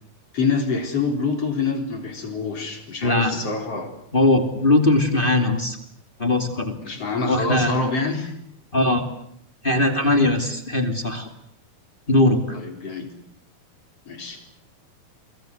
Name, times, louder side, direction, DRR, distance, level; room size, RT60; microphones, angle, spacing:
voice 1, 0.3-3.9 6.8-8.3 12.5-13.1 14.1-14.4, left 4 dB, 40° left, 5 dB, 4.8 m, -26 dB
voice 2, 3.0-3.4 4.1-5.8 6.2-7.0 7.3-7.7 8.7-9.1 9.6-11.3 12.1-12.6, left 2 dB, 15° left, 7 dB, 2.1 m, -20 dB
30.0 x 23.5 x 8.0 m, 0.69 s
omnidirectional pair, 4.4 m